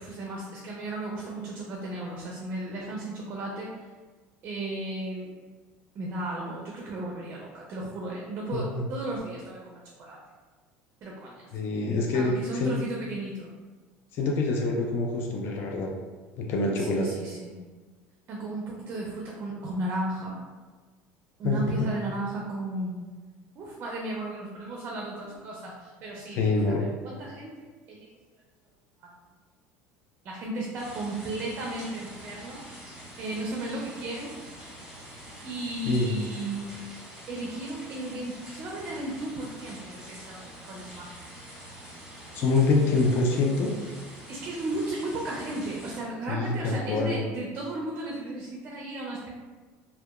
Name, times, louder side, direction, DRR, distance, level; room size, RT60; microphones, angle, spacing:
voice 1, 0.0-3.7 4.4-5.3 6.0-10.2 11.0-11.4 12.1-13.5 16.7-17.6 18.3-20.4 21.4-23.0 23.6-28.1 29.0-29.1 30.2-32.6 33.2-34.3 35.4-36.8 37.3-41.3 44.3-49.3, right 2 dB, 40° right, -2 dB, 0.4 m, -35 dB
voice 2, 8.5-8.8 11.5-12.8 14.1-15.9 16.4-17.1 21.4-21.9 26.4-26.9 35.9-36.1 42.3-43.7 46.3-47.2, left 3 dB, 50° left, -1 dB, 0.4 m, -25 dB
sound 1, 30.8-46.0, equal, 10° right, 1.3 m, -45 dB
2.7 x 2.2 x 2.3 m, 1.4 s
cardioid pair, 135°, 5 cm